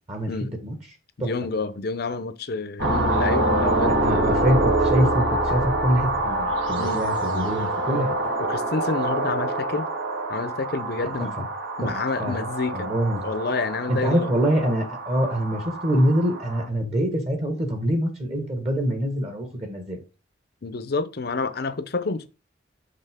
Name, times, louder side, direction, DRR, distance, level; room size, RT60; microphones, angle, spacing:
voice 1, 1.2-4.4 6.8-7.0 7.9-8.1 8.4-9.9 10.3-11.5 11.8-12.9 13.2-14.3 20.6-22.3, left 3 dB, 55° left, 0.6 m, -29 dB
sound 1, 2.8-16.7, right 2 dB, 70° right, 1.8 m, -26 dB
voice 2, 3.8-8.1 11.2-11.4 11.8-11.9 12.2-12.4 12.7-13.2 13.9-20.0, equal, 35° right, 1.5 m, -24 dB
6.9 x 5.6 x 3.7 m
head